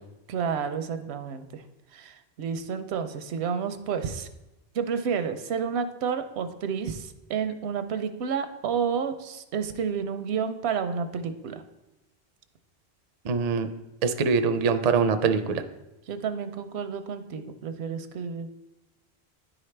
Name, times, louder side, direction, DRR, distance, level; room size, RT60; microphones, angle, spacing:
voice 1, 0.3-1.6 1.9-4.3 4.7-11.6 16.1-18.5, right 6 dB, 85° right, 9 dB, 0.9 m, -30 dB
voice 2, 13.2-13.7 14.0-15.6, right 5 dB, 55° right, 9 dB, 0.4 m, -23 dB
9.9 x 4.9 x 3.2 m, 0.97 s
omnidirectional pair, 1.1 m